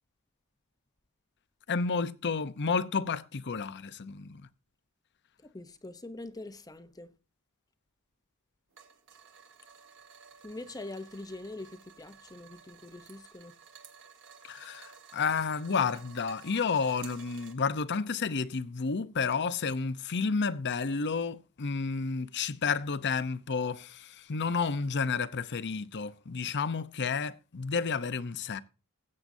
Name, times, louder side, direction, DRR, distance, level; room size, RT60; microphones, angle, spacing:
voice 1, 1.7-4.5 14.4-28.6, left 5 dB, 50° left, 0.7 m, -31 dB
voice 2, 5.4-7.1 10.4-13.5, left 2 dB, 15° left, 0.7 m, -43 dB
sound 1, 8.7-17.5, right 7 dB, 60° right, 1.9 m, -53 dB
20.5 x 8.6 x 2.7 m
head